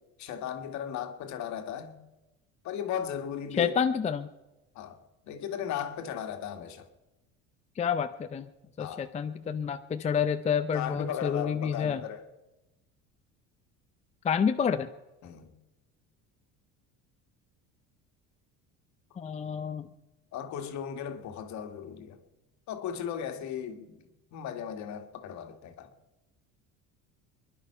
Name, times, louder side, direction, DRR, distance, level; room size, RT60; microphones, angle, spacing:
voice 1, 0.2-2.0 2.6-3.7 4.8-5.0 5.2-6.9 8.8-9.0 10.7-12.3 15.2-15.5 20.3-22.2 22.7-24.0 24.3-25.9, left 9 dB, 60° left, 1.8 m, -36 dB
voice 2, 3.6-4.3 7.8-8.5 8.8-12.0 14.2-14.9 19.2-19.9, left 7 dB, 20° left, 0.6 m, -29 dB
23.5 x 11.0 x 5.6 m
cardioid pair, 125°, 32 cm